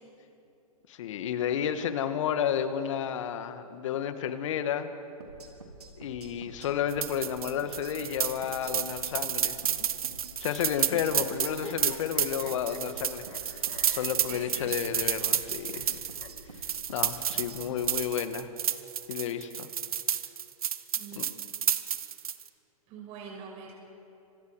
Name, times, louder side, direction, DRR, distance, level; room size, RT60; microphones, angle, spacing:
voice 1, 0.9-4.9 6.0-9.9 10.4-16.0 16.9-18.5 19.1-19.7 21.2-21.3, left 9 dB, 55° left, 9 dB, 1.8 m, -32 dB
sound 1, 5.2-18.0, right 2 dB, 90° right, 3.7 m, -48 dB
sound 2, 6.9-22.5, right 9 dB, 70° right, 1.3 m, -31 dB
sound 3, 10.8-13.4 13.7-15.0 15.3-15.4 15.7-15.8 16.2-16.3 17.3-18.3, left 9 dB, 25° left, 1.4 m, -46 dB
voice 2, 14.2-14.8 20.9-21.2 22.9-23.7, right 6 dB, 35° right, -1 dB, 6.0 m, -44 dB
28.5 x 26.0 x 4.9 m, 2.8 s
hypercardioid pair, 120°, 19 cm